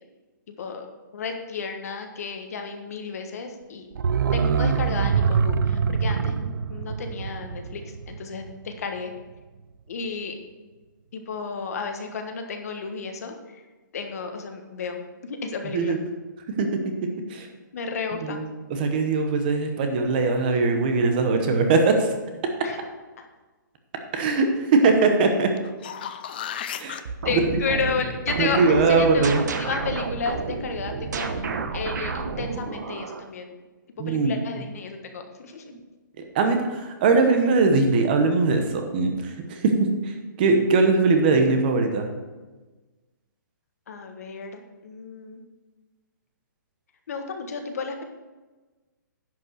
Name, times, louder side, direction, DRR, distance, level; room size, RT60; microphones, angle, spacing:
voice 1, 0.5-0.8 1.1-3.9 4.3-9.1 9.9-10.3 11.1-13.6 13.9-15.9 17.7-18.4 22.6-22.8 23.2-23.3 27.2-31.4 31.7-33.5 34.0-35.6 43.9-45.4 47.1-48.0, left 4 dB, 50° left, 5 dB, 1.3 m, -32 dB
sound 1, 3.9-8.7 9.0-9.1, right 6 dB, 80° right, 0.5 m, -24 dB
voice 2, 18.7-22.1 24.1-25.5 26.8-27.0 27.3-27.4 28.4-29.4 34.0-34.4 36.3-42.1, right 3 dB, 25° right, 5 dB, 0.9 m, -21 dB
sound 2, 25.6-27.0 31.8-31.9, left 9 dB, 30° left, 0.4 m, -34 dB
sound 3, 27.1-33.3, right 4 dB, 60° right, 1.0 m, -30 dB
10.5 x 5.4 x 6.3 m, 1.2 s
hypercardioid pair, 170°, 11 cm